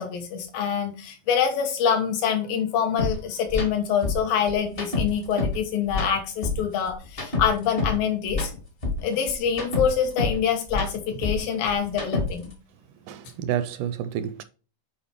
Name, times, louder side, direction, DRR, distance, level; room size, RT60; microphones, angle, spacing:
voice 1, 0.0-8.5 9.0-12.5, left 7 dB, 90° left, 3.1 m, -25 dB
sound 1, 3.0-3.1 3.5-3.7 4.0-5.6 5.9-8.0 8.3-10.4 10.7-12.5, left 3 dB, 45° left, 0.7 m, -28 dB
voice 2, 13.1-14.4, right 10 dB, 80° right, 1.9 m, -29 dB
8.6 x 4.2 x 3.6 m
omnidirectional pair, 3.9 m